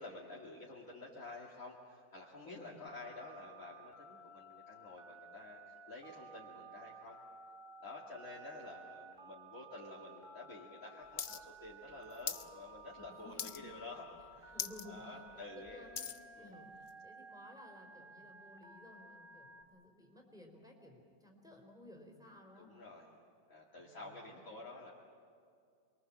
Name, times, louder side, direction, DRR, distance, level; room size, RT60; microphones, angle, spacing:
voice 1, 0.0-7.2 7.8-14.0 14.3-14.5 14.9-15.9 16.4-16.6 22.5-23.0 23.5-24.9, left 2 dB, 50° left, -5 dB, 2.8 m, -50 dB
voice 2, 2.4-2.8 13.1-13.5 14.5-22.7 23.8-24.5, left 1 dB, ahead, 0 dB, 4.3 m, -56 dB
Telephone, 2.9-19.6, right 3 dB, 20° right, 1.6 m, -55 dB
sound 1, 11.2-11.4 11.7-12.5 12.8-13.1 13.4-13.8 14.2-14.3 14.5-14.9 15.3-16.2 16.9-17.0, left 7 dB, 70° left, 0.4 m, -41 dB
28.5 x 23.0 x 7.5 m, 2.3 s
omnidirectional pair, 1.9 m